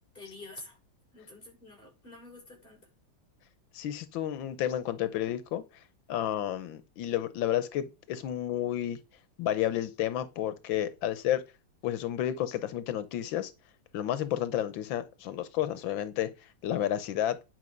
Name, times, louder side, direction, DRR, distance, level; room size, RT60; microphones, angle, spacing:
voice 1, 0.1-0.8 1.1-2.9, left 2 dB, 25° left, 6.5 m, -48 dB
voice 2, 3.7-5.8 6.1-9.0 9.4-11.4 11.8-13.5 13.9-17.4, left 11 dB, 90° left, 1.6 m, -31 dB
11.0 x 5.7 x 5.2 m
omnidirectional pair, 2.1 m